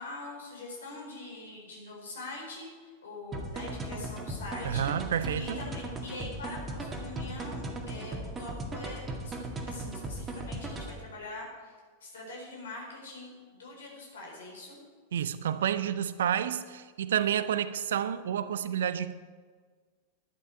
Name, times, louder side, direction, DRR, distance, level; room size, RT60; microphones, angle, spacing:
voice 1, 0.0-11.7 12.0-14.8, left 2 dB, 65° left, -1 dB, 4.2 m, -43 dB
sound 1, 3.3-11.0, right 1 dB, 15° right, 2.0 m, -37 dB
voice 2, 4.6-5.6 15.1-19.1, right 9 dB, 60° right, 13 dB, 0.6 m, -30 dB
11.5 x 11.0 x 4.5 m, 1.5 s
figure-of-eight pair, 90°, 0 cm